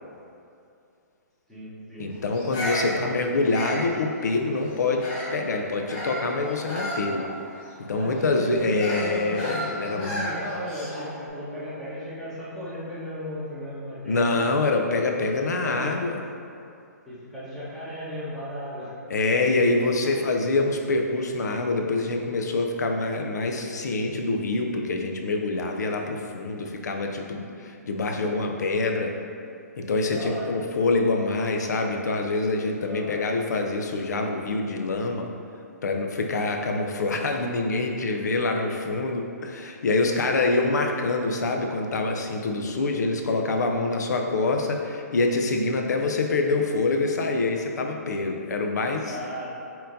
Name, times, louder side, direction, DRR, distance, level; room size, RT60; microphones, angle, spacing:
voice 1, 1.5-2.1 2.8-3.1 7.9-14.7 15.4-16.0 17.0-18.9 20.0-20.1 30.0-30.6 32.8-33.2 40.5-40.7 49.0-49.5, equal, 5° left, -11 dB, 1.1 m, -36 dB
voice 2, 2.0-7.3 7.8-10.3 14.1-16.2 19.1-29.1 29.8-35.3 35.8-49.2, left 3 dB, 75° left, 3 dB, 0.5 m, -25 dB
Bird vocalization bird call bird song, 2.3-5.4 5.9-11.2, equal, 35° left, 1.2 m, -33 dB
4.3 x 3.8 x 2.6 m, 2.5 s
hypercardioid pair, 145°, 9 cm